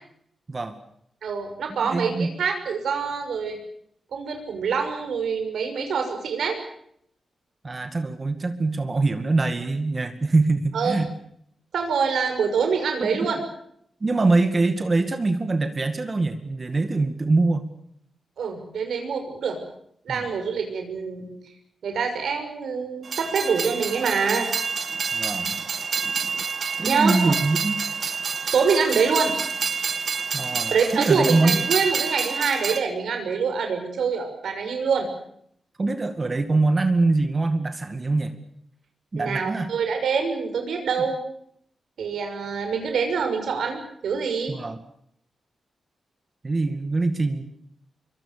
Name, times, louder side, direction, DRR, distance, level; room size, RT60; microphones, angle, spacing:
voice 1, 1.2-3.6 4.1-6.6 10.7-11.0 11.7-13.4 18.4-19.6 20.0-21.4 21.8-24.5 26.8-27.4 28.5-29.3 30.7-35.1 39.2-41.2 42.0-44.6, right 5 dB, 85° right, 5 dB, 6.1 m, -25 dB
voice 2, 1.9-2.3 7.6-11.0 13.0-13.1 14.0-17.7 20.1-20.2 25.1-25.5 26.8-27.8 30.3-31.7 35.8-38.3 39.1-39.7 44.5-44.8 46.4-47.4, right 3 dB, 30° right, 8 dB, 2.1 m, -23 dB
Train, 23.0-32.8, right 5 dB, 55° right, 1.9 m, -28 dB
26.0 x 24.0 x 6.9 m, 0.70 s
wide cardioid pair, 135°, 0 cm